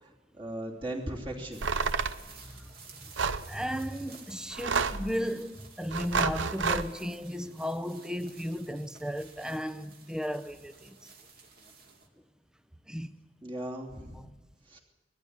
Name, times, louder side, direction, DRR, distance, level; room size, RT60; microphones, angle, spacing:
voice 1, 0.0-1.6 13.4-14.2 14.7-14.8, right 1 dB, 25° right, 3.0 m, -38 dB
sound 1, 1.5-12.1, right 5 dB, 55° right, 2.6 m, -53 dB
sound 2, 1.6-2.2 3.2-3.5 4.5-5.1 5.9-6.9, right 5 dB, 75° right, 0.8 m, -29 dB
voice 2, 3.5-11.0 12.9-13.1, equal, 5° right, 0.7 m, -34 dB
20.5 x 14.0 x 9.6 m
head